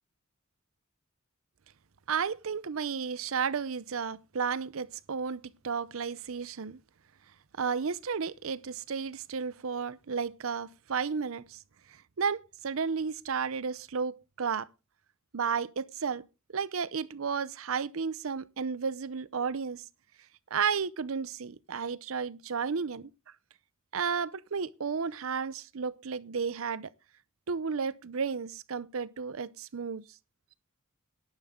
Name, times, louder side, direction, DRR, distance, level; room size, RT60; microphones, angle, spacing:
voice 1, 2.1-6.8 7.6-11.6 12.2-14.7 15.3-16.2 16.5-19.8 20.5-23.1 23.9-26.9 27.5-30.0, right 6 dB, 70° right, 0.6 m, -33 dB
11.5 x 10.5 x 3.7 m
head